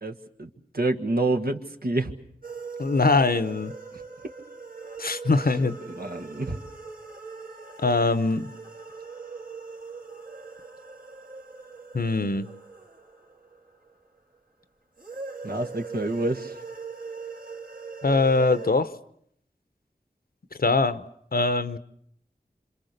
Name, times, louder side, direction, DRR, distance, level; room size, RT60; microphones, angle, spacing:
voice 1, 0.0-2.1 5.9-6.6 15.4-16.6, right 2 dB, 80° right, 4 dB, 1.7 m, -28 dB
sound 1, 2.4-14.2 15.0-18.7, right 4 dB, 60° right, 2.4 m, -41 dB
voice 2, 2.8-3.7 5.0-5.8 7.8-8.5 11.9-12.5 18.0-18.9 20.6-21.0 21.3-21.8, left 3 dB, 75° left, 12 dB, 1.0 m, -22 dB
27.0 x 26.5 x 6.7 m, 0.69 s
wide cardioid pair, 55°, 16 cm